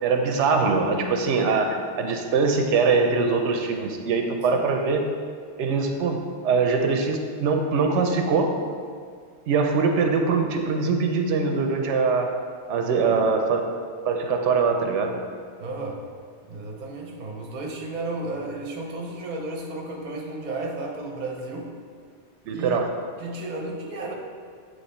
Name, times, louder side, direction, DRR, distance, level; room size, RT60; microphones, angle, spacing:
voice 1, 0.0-5.0 5.6-6.2 6.4-8.5 9.5-12.3 12.7-13.6 14.1-15.2 22.5-22.9, right 4 dB, 90° right, 4 dB, 0.9 m, -22 dB
voice 2, 12.9-13.2 15.6-16.1 16.5-21.7 22.4-22.9 23.2-24.1, right 2 dB, 45° right, 1 dB, 0.8 m, -33 dB
7.9 x 3.1 x 4.2 m, 2.1 s
omnidirectional pair, 1.2 m